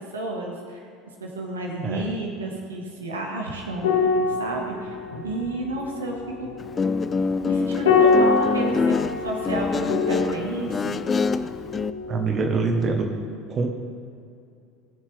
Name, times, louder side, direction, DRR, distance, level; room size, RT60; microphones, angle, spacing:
voice 1, 0.1-0.8 1.2-5.0 5.2-6.5 7.0-7.1 7.4-11.0, right 2 dB, 80° right, 0 dB, 1.6 m, -31 dB
sound 1, 3.8-12.5 12.8-13.0, left 4 dB, 75° left, 1.6 m, -25 dB
Guitar, 6.6-11.9, left 4 dB, 25° left, 0.4 m, -25 dB
voice 2, 12.1-13.1 13.5-13.7, right 4 dB, 35° right, 3 dB, 1.3 m, -24 dB
19.0 x 7.3 x 3.5 m, 2.5 s
figure-of-eight pair, 70°, 0 cm